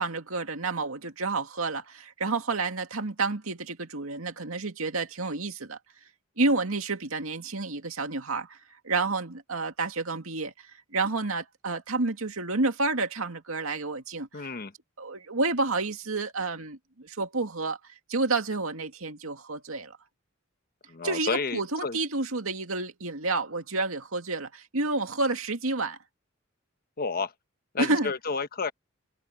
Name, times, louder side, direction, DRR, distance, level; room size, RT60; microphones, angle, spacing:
voice 1, 0.0-5.8 6.4-8.6 8.8-10.7 10.9-14.5 15.0-20.0 21.0-26.0 27.8-28.1, right 3 dB, 85° right, 2.3 m, -30 dB
voice 2, 14.3-14.7 20.9-22.0 27.0-27.3 27.7-28.7, left 4 dB, 45° left, 1.2 m, -31 dB
head